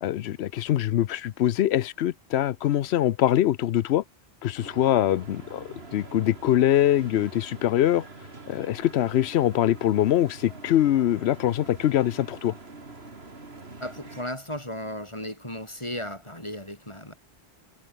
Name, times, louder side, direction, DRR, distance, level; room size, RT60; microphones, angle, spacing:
voice 1, 0.0-4.0 4.4-8.0 8.5-12.5, left 12 dB, 90° left, 0.9 m, -23 dB
sound 1, 4.6-14.2, right 3 dB, 80° right, 3.3 m, -45 dB
voice 2, 13.8-17.1, left 1 dB, 30° left, 6.9 m, -35 dB
omnidirectional pair, 1.1 m